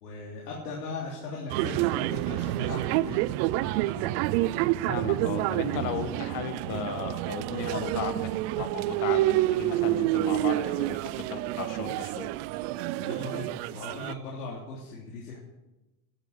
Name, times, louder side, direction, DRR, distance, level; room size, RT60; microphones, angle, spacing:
voice 1, 0.0-3.3 3.6-4.1 13.0-15.4, left 2 dB, 85° left, -3 dB, 3.4 m, -38 dB
sound 1, 1.5-14.1, right 16 dB, 45° right, 0.5 m, -28 dB
voice 2, 4.8-8.3 8.6-12.3, left 8 dB, 45° left, 8 dB, 1.9 m, -35 dB
11.5 x 11.5 x 8.0 m, 1.0 s
supercardioid pair, 125°, 46 cm